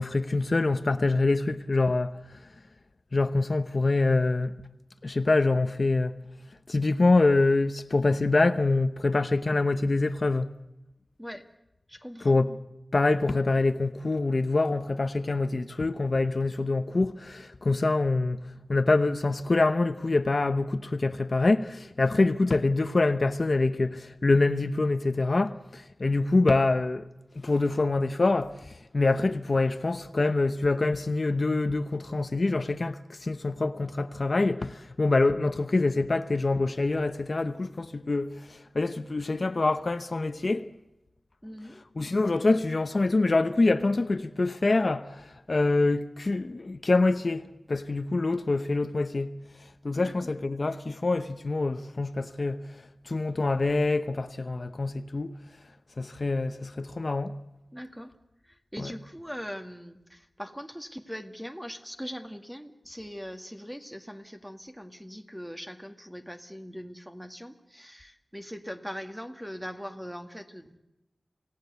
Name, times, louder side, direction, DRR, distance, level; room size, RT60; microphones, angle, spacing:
voice 1, 0.0-2.4 3.1-4.7 5.0-6.2 6.7-10.5 12.2-12.6 12.9-18.4 18.7-27.1 27.3-40.7 42.0-49.3 49.8-55.4 56.0-57.4 58.8-58.9, left 3 dB, 50° left, 0.9 m, -25 dB
voice 2, 11.9-12.4 41.4-41.8 50.0-50.1 57.7-58.2 58.4-70.8, equal, 5° right, 2.0 m, -41 dB
27.5 x 17.5 x 8.2 m
wide cardioid pair, 80°, 0 cm